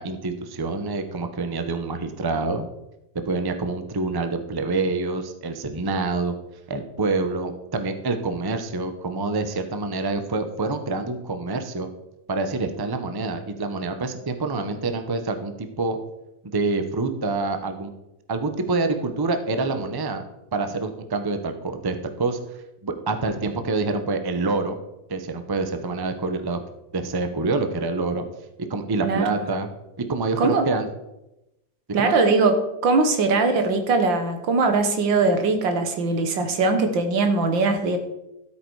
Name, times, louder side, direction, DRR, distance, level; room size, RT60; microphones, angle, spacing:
voice 1, 0.0-2.7 3.3-6.3 6.7-11.9 12.3-16.0 16.4-17.9 18.3-20.2 20.5-22.4 22.8-24.8 25.1-26.6 26.9-28.2 28.7-29.7 30.1-30.9 32.0-32.1, right 3 dB, 20° right, 8 dB, 0.6 m, -26 dB
voice 2, 31.9-38.0, right 3 dB, 80° right, 6 dB, 2.1 m, -21 dB
13.0 x 8.5 x 4.8 m, 0.91 s
omnidirectional pair, 2.0 m